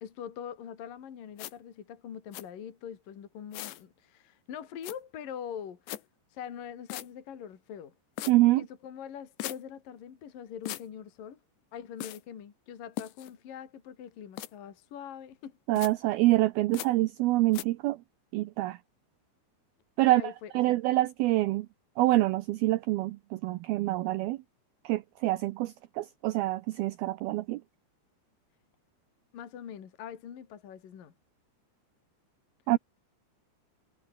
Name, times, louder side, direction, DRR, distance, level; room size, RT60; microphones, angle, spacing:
voice 1, 0.0-5.8 6.3-7.9 8.6-11.4 11.7-15.6 20.1-20.8 29.3-31.1, left 8 dB, 50° left, 3.9 m, -43 dB
sound 1, 1.4-1.5 2.3-2.4 3.5-3.8 4.8-5.0 5.9-6.0 6.9-7.1 8.2-8.3 9.4-9.6 10.7-10.8 12.0-12.2 13.0-13.3 14.4-14.5 15.8-15.9 16.7-16.9 17.5-17.6, left 15 dB, 75° left, 3.4 m, -38 dB
voice 2, 8.3-8.7 15.7-18.0 18.3-18.8 20.0-21.7 22.0-24.4 24.8-27.6 32.7-32.8, right 17 dB, 90° right, 2.1 m, -26 dB
omnidirectional pair, 5.3 m